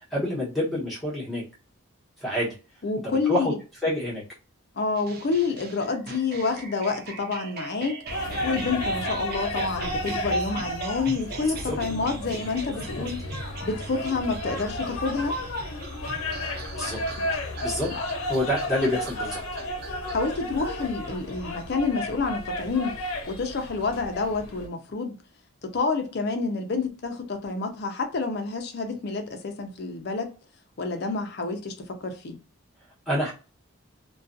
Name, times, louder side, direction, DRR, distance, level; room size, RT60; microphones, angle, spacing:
voice 1, 0.1-1.4 2.2-2.6 3.0-3.5 3.8-4.2 11.6-11.8 13.0-13.1 16.8-17.0 17.6-17.9 18.3-19.4 33.1-33.3, left 1 dB, ahead, 1.0 m, -27 dB
voice 2, 2.8-3.6 4.8-8.0 8.4-13.2 13.6-15.4 20.1-22.9 23.3-25.2 25.7-30.3 30.8-31.7 32.0-32.4, left 4 dB, 50° left, 0.5 m, -28 dB
sound 1, 4.9-21.8, right 4 dB, 45° right, 0.4 m, -41 dB
sound 2, 8.1-24.7, left 1 dB, 85° left, 0.7 m, -32 dB
2.4 x 2.2 x 2.5 m
head